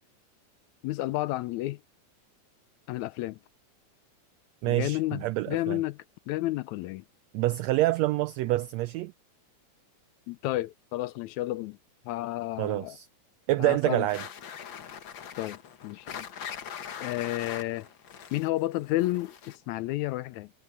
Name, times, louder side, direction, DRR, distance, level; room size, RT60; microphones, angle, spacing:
voice 1, 0.8-1.8 2.9-3.4 4.7-6.0 6.3-7.0 10.3-11.8 12.1-13.0 13.6-14.1 15.4-15.6 15.8-16.3 17.0-17.9 18.3-20.5, left 17 dB, 80° left, 1.8 m, -31 dB
voice 2, 4.6-5.8 7.3-9.1 12.6-13.1 13.5-14.2, right 17 dB, 90° right, 1.5 m, -27 dB
sound 1, 14.1-19.7, left 8 dB, 55° left, 1.4 m, -42 dB
omnidirectional pair, 3.6 m